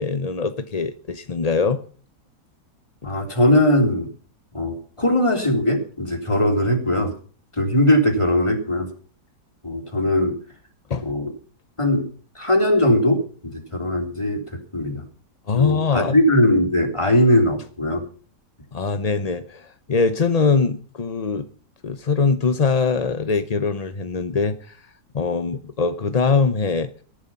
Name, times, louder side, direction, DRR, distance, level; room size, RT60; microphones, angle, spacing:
voice 1, 0.0-1.8 10.9-11.1 15.5-16.2 18.7-21.5 21.8-24.8 25.1-26.9, left 4 dB, 35° left, 0.6 m, -22 dB
voice 2, 3.0-4.1 4.5-7.1 7.6-8.9 9.6-10.4 11.0-11.3 11.8-12.1 12.4-15.0 15.5-18.0, left 1 dB, 15° left, 3.6 m, -20 dB
17.0 x 11.5 x 5.7 m
omnidirectional pair, 1.8 m